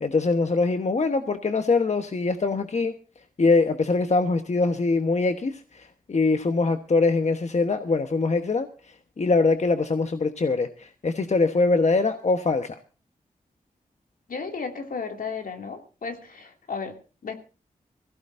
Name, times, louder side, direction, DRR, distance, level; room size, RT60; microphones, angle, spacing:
voice 1, 0.0-2.9 3.4-8.7 9.2-12.8, left 3 dB, 55° left, 7 dB, 1.1 m, -23 dB
voice 2, 14.3-17.3, left 5 dB, 80° left, 4 dB, 2.6 m, -34 dB
22.5 x 16.0 x 2.6 m, 0.34 s
cardioid pair, 55°, 14 cm